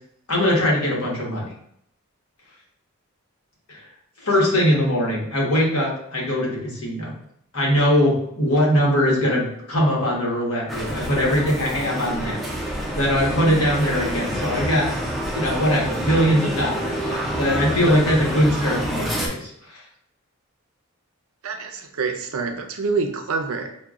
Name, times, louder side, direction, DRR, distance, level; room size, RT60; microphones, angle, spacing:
voice 1, 0.3-1.5 3.7-3.9 4.2-7.1 7.5-12.4 13.0-14.9 15.3-19.8, equal, 75° left, -4 dB, 1.2 m, -21 dB
sound 1, 10.7-19.3, equal, ahead, 0.4 m, -27 dB
voice 2, 21.4-23.7, right 4 dB, 70° right, 5 dB, 0.5 m, -26 dB
5.7 x 2.2 x 2.4 m, 0.71 s
head